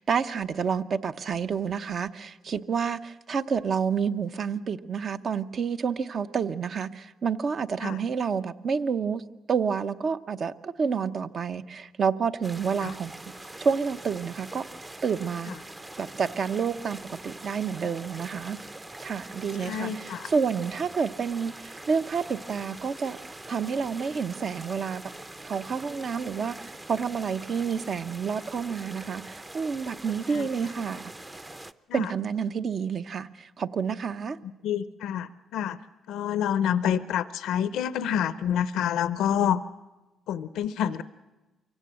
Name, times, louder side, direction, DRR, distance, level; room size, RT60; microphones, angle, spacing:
voice 1, 0.0-9.2 9.5-13.1 13.6-14.7 15.0-15.6 16.0-18.6 19.0-23.2 23.5-25.0 25.4-31.1 31.9-34.4, right 6 dB, 50° right, 11 dB, 0.8 m, -29 dB
sound 1, 12.4-31.7, right 2 dB, 20° right, 0.7 m, -43 dB
voice 2, 19.6-20.3 30.3-30.5 31.9-32.1 34.6-35.8 36.1-39.6 40.3-41.0, left 9 dB, 85° left, 14 dB, 0.6 m, -28 dB
24.0 x 16.5 x 7.7 m, 1.1 s
cardioid pair, 90°, 0 cm